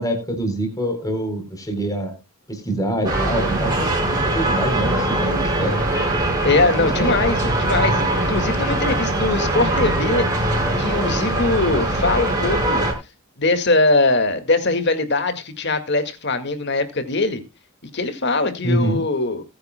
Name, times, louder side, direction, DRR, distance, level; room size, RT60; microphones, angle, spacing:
voice 1, 0.0-2.1 2.5-3.9 4.2-5.8 6.7-7.2 18.6-19.0, right 1 dB, 15° left, 3.9 m, -25 dB
sound 1, 3.0-12.9, right 1 dB, 20° right, 5.1 m, -21 dB
voice 2, 6.4-10.3 10.8-12.9 13.4-17.4 17.9-19.4, left 3 dB, 55° left, 2.0 m, -21 dB
20.0 x 9.7 x 2.2 m
head